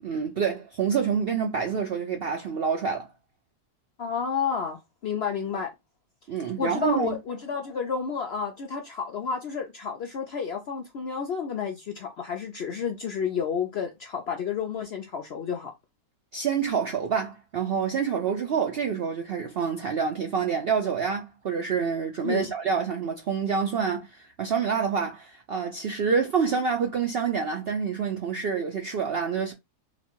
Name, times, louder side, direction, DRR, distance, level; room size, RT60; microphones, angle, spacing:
voice 1, 0.0-3.1 6.3-7.2 16.3-29.5, right 6 dB, 65° right, 0.5 m, -27 dB
voice 2, 4.0-5.7 6.6-15.7 22.2-22.5, left 6 dB, 65° left, 0.6 m, -31 dB
4.1 x 2.3 x 4.4 m
omnidirectional pair, 1.6 m